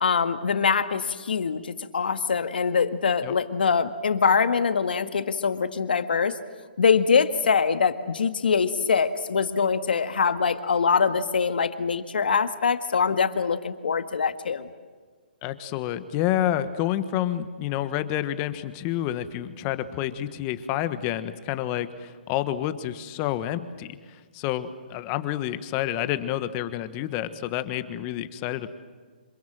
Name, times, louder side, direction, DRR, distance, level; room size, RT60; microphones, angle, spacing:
voice 1, 0.0-6.4 6.8-14.7, left 6 dB, 75° left, 9 dB, 1.8 m, -23 dB
voice 2, 15.4-28.7, left 12 dB, 30° left, 12 dB, 1.4 m, -29 dB
26.5 x 23.0 x 7.6 m, 1.5 s
hypercardioid pair, 140°, 5 cm